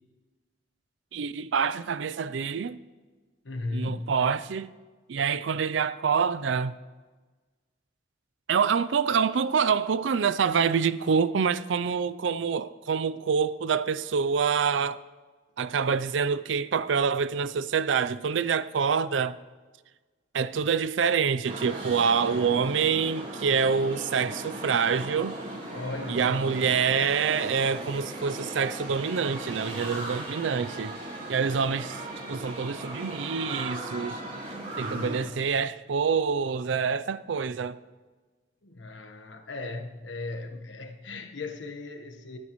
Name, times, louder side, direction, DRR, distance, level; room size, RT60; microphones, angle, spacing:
voice 1, 1.1-2.8 3.7-4.7 5.1-6.7 8.5-15.0 15.6-19.4 20.3-25.4 26.1-30.9 31.3-32.0 32.3-34.2 34.8-37.8, right 6 dB, 90° right, 0.5 m, -26 dB
voice 2, 3.4-4.2 25.7-26.5 34.8-35.5 38.6-42.4, left 2 dB, 85° left, 1.2 m, -37 dB
sound 1, 21.4-35.2, right 1 dB, 40° right, 4.7 m, -37 dB
25.5 x 9.7 x 3.1 m
head